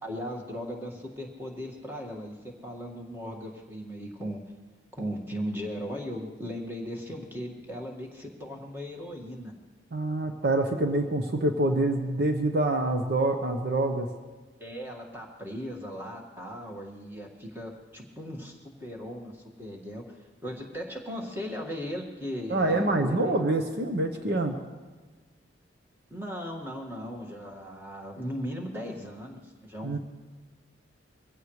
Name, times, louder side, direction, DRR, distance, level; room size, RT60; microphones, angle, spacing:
voice 1, 0.0-4.4 4.9-9.5 14.6-23.4 26.1-30.0, equal, 10° right, 0 dB, 1.9 m, -37 dB
voice 2, 9.9-14.1 22.5-24.6 29.8-30.0, right 2 dB, 55° right, 5 dB, 1.0 m, -26 dB
23.5 x 16.5 x 3.3 m, 1.3 s
head